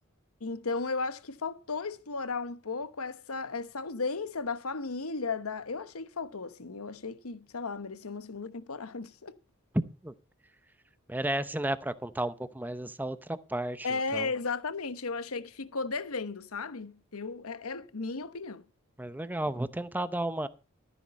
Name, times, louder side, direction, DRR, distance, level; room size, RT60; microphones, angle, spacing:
voice 1, 0.4-9.4 13.8-18.6, left 4 dB, 90° left, 1.1 m, -35 dB
voice 2, 11.1-14.3 19.0-20.5, right 1 dB, 10° right, 0.7 m, -33 dB
13.5 x 9.8 x 4.2 m
head